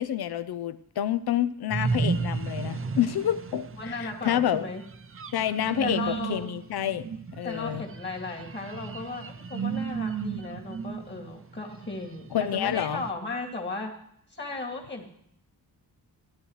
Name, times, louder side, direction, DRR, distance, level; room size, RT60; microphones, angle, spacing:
voice 1, 0.0-4.6 5.3-7.1 7.4-7.8 12.3-13.0, left 10 dB, 70° left, 13 dB, 0.7 m, -28 dB
sound 1, 1.7-13.1, right 5 dB, 35° right, 0.5 m, -34 dB
voice 2, 3.8-4.8 5.8-6.5 7.4-13.9 14.3-15.0, left 3 dB, 25° left, 0 dB, 2.3 m, -35 dB
16.0 x 10.5 x 3.2 m, 0.69 s
wide cardioid pair, 140°, 39 cm